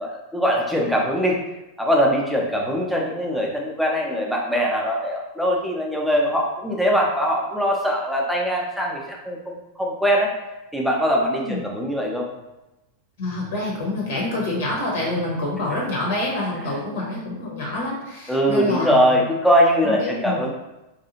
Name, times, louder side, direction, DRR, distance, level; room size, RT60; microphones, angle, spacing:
voice 1, 0.0-1.4 1.8-10.3 10.7-12.3 18.3-20.5, equal, ahead, -2 dB, 0.5 m, -22 dB
voice 2, 13.2-19.2 19.8-20.4, left 2 dB, 55° left, -3 dB, 0.8 m, -27 dB
2.6 x 2.3 x 2.8 m, 0.99 s
figure-of-eight pair, 90°, 0 cm